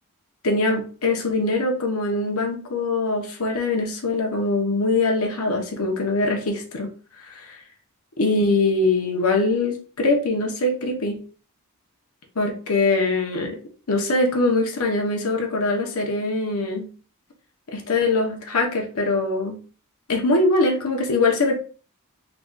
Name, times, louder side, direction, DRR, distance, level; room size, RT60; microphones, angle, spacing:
voice 1, 0.4-6.9 7.3-7.6 8.2-11.2 12.4-13.6 13.9-16.9 17.7-19.6 20.1-21.5, left 2 dB, 75° left, 2 dB, 0.9 m, -22 dB
3.8 x 2.4 x 3.8 m, 0.38 s
head